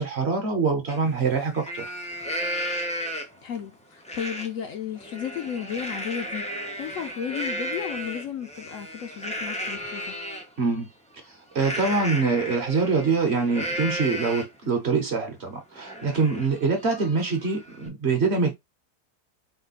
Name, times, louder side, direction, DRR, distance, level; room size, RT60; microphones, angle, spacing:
voice 1, 0.0-1.9 10.6-10.9 11.5-18.5, right 4 dB, 45° right, 1.1 m, -24 dB
Livestock farm animals working animals, 0.9-1.0 1.4-3.5 4.0-4.5 4.9-10.4 11.5-14.6 15.1-15.2 15.5-17.9, equal, 10° left, 0.4 m, -34 dB
voice 2, 3.4-10.2, left 8 dB, 65° left, 0.9 m, -34 dB
4.5 x 2.2 x 4.1 m
omnidirectional pair, 1.7 m